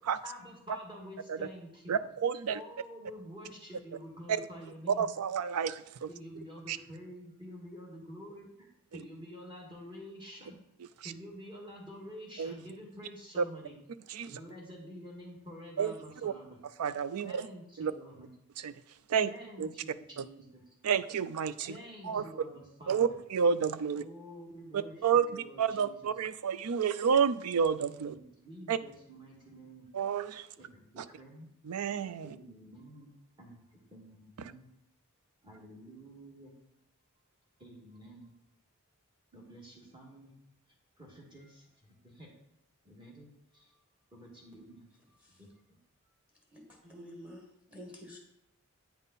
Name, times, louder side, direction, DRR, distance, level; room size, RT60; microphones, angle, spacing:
voice 1, 0.2-2.0 2.5-5.1 6.1-10.6 11.0-13.8 14.2-16.6 17.2-18.3 19.3-20.6 21.7-23.0 23.9-25.0 25.3-26.0 28.1-29.9 30.6-31.5 32.2-34.7 35.4-36.5 37.6-38.4 39.3-40.3 41.0-42.3 42.9-43.8 44.1-45.6, equal, 20° right, -2 dB, 2.0 m, -49 dB
voice 2, 1.9-2.6 4.3-4.4 4.9-6.1 6.7-6.8 11.0-11.1 12.4-12.5 13.4-13.5 14.1-14.3 15.8-15.9 16.2-16.3 16.8-17.5 17.8-17.9 18.6-18.7 19.1-19.3 19.6-19.7 20.2-20.3 20.8-21.7 22.1-22.2 22.9-24.0 24.7-28.1 28.7-28.8 29.9-30.5 31.0-31.1 31.7-32.3, right 7 dB, 90° right, 15 dB, 0.4 m, -30 dB
voice 3, 46.5-48.2, equal, 5° right, 1 dB, 1.4 m, -49 dB
8.9 x 5.5 x 4.1 m, 0.83 s
head